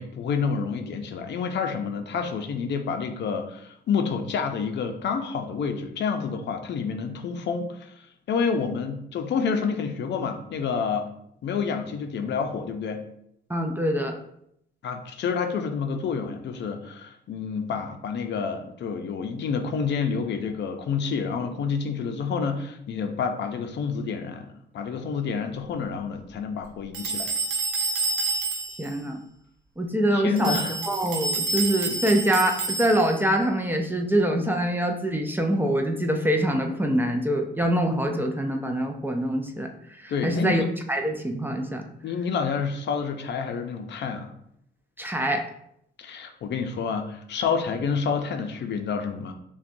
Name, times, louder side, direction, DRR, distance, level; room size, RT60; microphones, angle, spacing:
voice 1, 0.0-7.9 8.3-11.1 11.4-13.0 14.8-24.5 24.7-27.3 30.1-30.8 40.1-40.7 42.0-44.3 46.0-49.3, left 6 dB, 60° left, 5 dB, 0.6 m, -28 dB
voice 2, 13.5-14.1 28.8-29.2 29.8-39.7 40.0-40.6 40.9-41.8 45.0-45.4, right 1 dB, 10° right, 3 dB, 0.5 m, -24 dB
sound 1, 26.9-28.9 30.4-33.3, right 3 dB, 85° right, 0.9 m, -28 dB
5.7 x 2.3 x 2.6 m, 0.74 s
cardioid pair, 90°, 20 cm